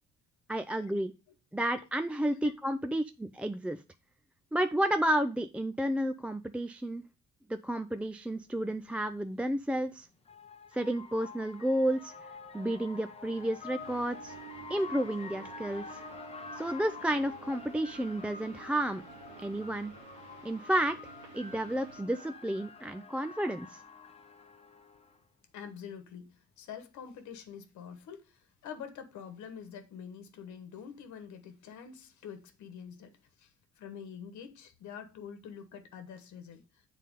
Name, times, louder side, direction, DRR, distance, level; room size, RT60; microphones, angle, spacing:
voice 1, 0.5-1.1 1.5-3.8 4.5-7.0 7.5-10.1 10.7-12.1 12.5-14.4 14.7-16.0 16.5-19.0 19.4-19.9 20.4-21.0 21.3-23.8, right 1 dB, 5° right, 0.3 m, -31 dB
sound 1, 8.1-8.2 9.6-25.2, left 4 dB, 20° left, 0.9 m, -48 dB
sound 2, 13.8-22.0, right 7 dB, 75° right, 2.2 m, -52 dB
voice 2, 25.5-36.6, left 7 dB, 70° left, 1.2 m, -46 dB
7.4 x 4.0 x 5.2 m
cardioid pair, 115°, 30 cm